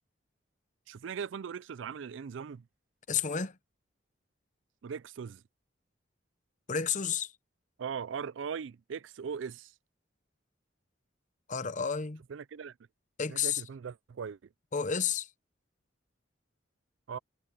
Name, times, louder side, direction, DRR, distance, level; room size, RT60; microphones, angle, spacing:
voice 1, 0.9-2.7 4.8-5.4 7.8-9.7 12.3-12.7 13.3-14.4 17.1-17.2, right 6 dB, 75° right, 0.4 m, -39 dB
voice 2, 3.1-3.6 6.7-7.3 11.5-12.2 13.2-13.6 14.7-15.3, left 7 dB, 40° left, 0.8 m, -31 dB
head